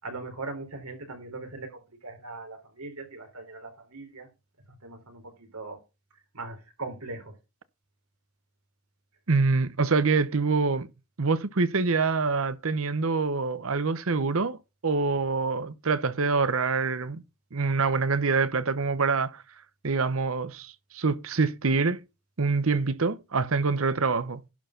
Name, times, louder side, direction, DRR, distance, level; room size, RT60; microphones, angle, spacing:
voice 1, 0.0-4.3 4.8-5.8 6.3-7.4, right 3 dB, 85° right, 3.8 m, -40 dB
voice 2, 9.3-10.9 11.2-17.2 17.5-19.4 19.8-22.0 22.4-24.5, right 4 dB, 65° right, 0.9 m, -25 dB
11.5 x 4.6 x 5.8 m
head